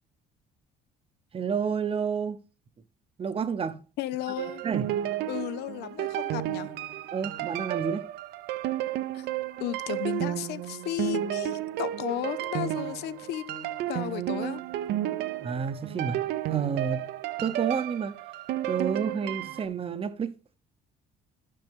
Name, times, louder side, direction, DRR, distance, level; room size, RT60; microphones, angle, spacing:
voice 1, 1.3-2.4 3.2-3.8 4.6-5.0 7.1-8.1 15.4-17.1 17.4-18.2 18.7-20.6, right 6 dB, 35° right, 0.7 m, -30 dB
voice 2, 4.0-4.6 5.3-6.8 9.1-9.3 9.6-14.6, left 13 dB, 75° left, 0.5 m, -34 dB
sound 1, 4.4-19.7, right 13 dB, 75° right, 0.6 m, -32 dB
11.0 x 5.3 x 3.5 m
cardioid pair, 110°, 17 cm